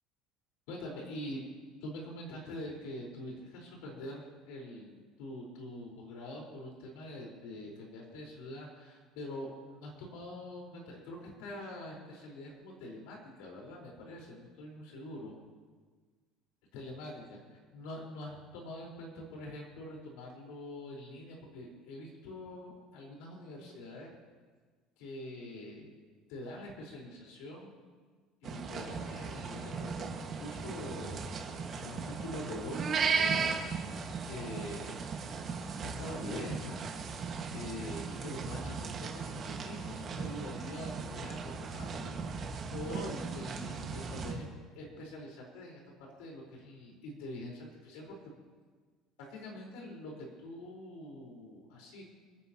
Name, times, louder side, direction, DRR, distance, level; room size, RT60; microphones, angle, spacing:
voice 1, 0.7-1.4 1.8-15.4 16.7-24.1 25.0-25.9 26.3-27.7 28.4-34.0 34.3-34.9 35.8-36.8 37.1-42.1 42.7-44.5 44.8-48.3 49.3-52.0, left 1 dB, 90° left, -1 dB, 4.4 m, -44 dB
sound 1, 28.4-44.3, right 5 dB, 35° right, 1.6 m, -37 dB
28.5 x 10.0 x 3.0 m, 1.5 s
cardioid pair, 165°, 0 cm